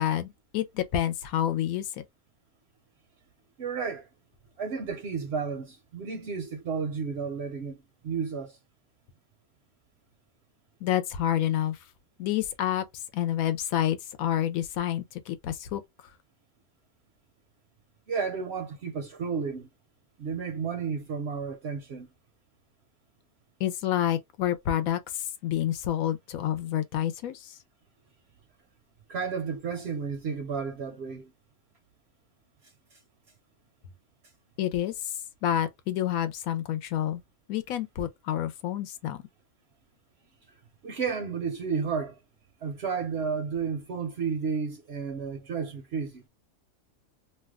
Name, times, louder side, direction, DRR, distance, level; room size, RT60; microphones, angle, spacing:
voice 1, 0.0-2.0 10.8-11.8 12.2-12.8 13.1-15.8 23.6-27.6 34.6-35.1 35.4-37.2 37.5-39.2, left 11 dB, 80° left, 1.0 m, -28 dB
voice 2, 3.6-4.1 4.6-8.6 18.1-19.7 20.2-22.1 29.1-31.3 40.8-42.2 42.6-46.2, right 5 dB, 65° right, 0.7 m, -32 dB
2.6 x 2.2 x 3.4 m
omnidirectional pair, 1.5 m